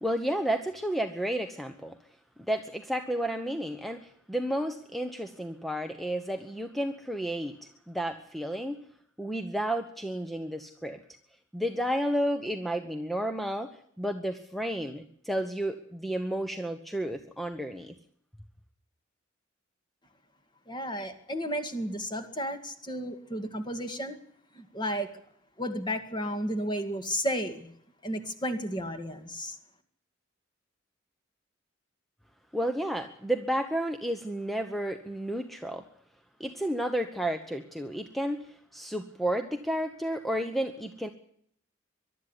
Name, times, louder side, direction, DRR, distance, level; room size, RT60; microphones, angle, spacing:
voice 1, 0.0-2.0 2.5-8.8 9.2-11.0 11.5-17.9 32.5-35.9 36.4-41.1, right 1 dB, ahead, 7 dB, 1.0 m, -32 dB
voice 2, 20.7-24.2 24.5-25.1 25.6-27.7 28.0-29.6, equal, 25° left, 7 dB, 2.2 m, -33 dB
22.5 x 12.0 x 9.9 m, 0.66 s
head